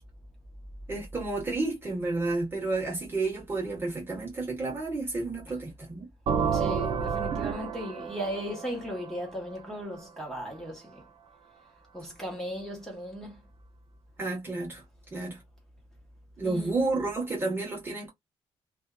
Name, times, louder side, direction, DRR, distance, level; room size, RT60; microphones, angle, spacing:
voice 1, 0.9-6.1 14.2-14.8 15.1-15.4 16.4-18.1, right 3 dB, 20° right, 1.0 m, -31 dB
sound 1, 6.3-10.0, right 6 dB, 60° right, 0.5 m, -30 dB
voice 2, 6.4-11.0 11.9-13.4 16.4-16.8, equal, 5° left, 1.2 m, -37 dB
2.7 x 2.3 x 2.2 m
wide cardioid pair, 170°, 10 cm